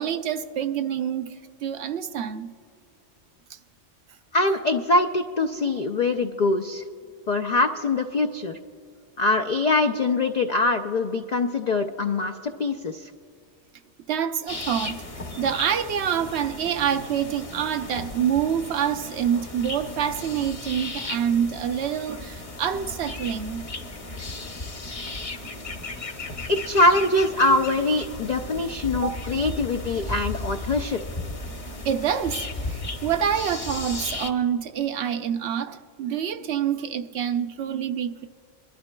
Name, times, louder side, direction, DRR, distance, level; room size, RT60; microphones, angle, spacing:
voice 1, 0.0-1.3 1.6-2.5 3.5-3.6 14.1-15.0 15.4-23.7 28.9-29.5 31.7-38.3, right 8 dB, 70° right, 0.8 m, -27 dB
voice 2, 4.3-6.8 7.3-8.6 9.2-13.1 26.5-31.0, left 2 dB, 65° left, 0.4 m, -23 dB
sound 1, 14.5-34.3, left 2 dB, 35° left, 0.8 m, -35 dB
23.0 x 12.0 x 2.2 m
omnidirectional pair, 1.3 m